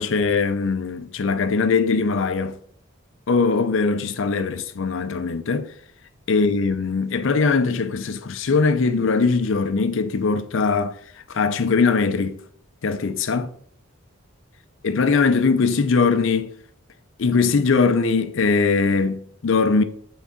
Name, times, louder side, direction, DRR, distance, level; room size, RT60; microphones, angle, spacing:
voice 1, 0.0-2.6 3.3-5.7 6.3-11.0 11.3-12.4 12.8-13.5 14.8-16.5 17.2-19.8, left 4 dB, 65° left, 0.5 m, -21 dB
8.5 x 3.8 x 3.9 m
head